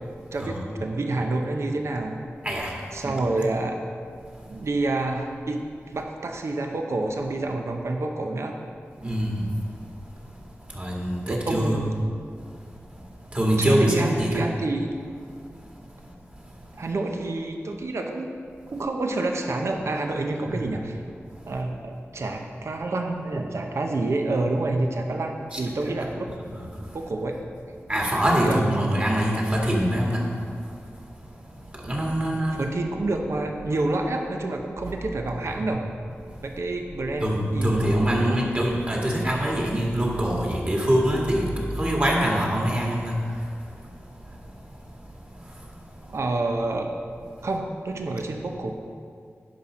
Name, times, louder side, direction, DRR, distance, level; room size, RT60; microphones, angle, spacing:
voice 1, 0.3-2.2 2.9-3.8 4.5-8.6 11.3-12.0 13.6-14.9 16.8-18.3 18.7-21.0 21.5-26.3 26.9-27.4 28.4-29.0 32.6-35.8 36.4-38.4 46.1-46.9 47.4-48.7, right 2 dB, 70° right, 3 dB, 0.8 m, -28 dB
voice 2, 3.0-3.4 9.0-9.4 10.7-11.8 13.3-14.4 20.5-20.6 25.5-25.6 27.9-30.2 31.8-32.7 37.2-41.5 41.8-43.2, equal, 30° right, -2 dB, 2.0 m, -24 dB
10.0 x 5.7 x 5.1 m, 2.2 s
wide cardioid pair, 75°, 5 cm